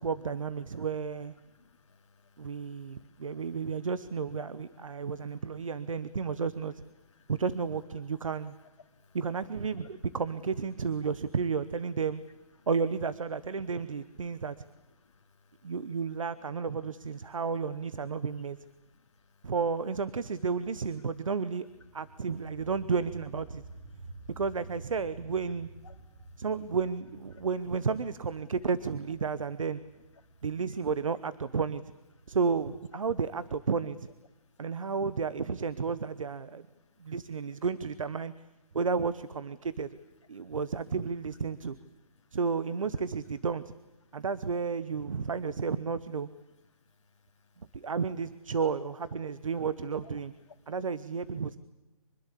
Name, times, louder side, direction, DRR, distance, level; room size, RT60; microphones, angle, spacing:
voice 1, 0.0-1.3 2.4-6.8 7.3-8.5 9.1-12.2 12.7-14.6 15.6-18.6 19.4-21.7 21.9-23.6 24.4-25.7 26.4-29.8 30.4-31.8 32.3-34.1 34.6-36.7 37.0-38.3 38.7-39.9 40.3-41.8 42.3-43.6 44.1-46.3 47.7-50.3 50.7-51.6, right 5 dB, 60° right, 15 dB, 1.1 m, -32 dB
voice 2, 1.5-3.4 4.9-5.1 7.2-7.3 8.9-9.2 15.0-15.2 25.8-26.2, left 5 dB, 55° left, 3 dB, 2.4 m, -62 dB
sound 1, 21.7-33.2, right 2 dB, 40° right, 3.4 m, -50 dB
25.0 x 22.0 x 8.5 m, 1.0 s
hypercardioid pair, 180°, 19 cm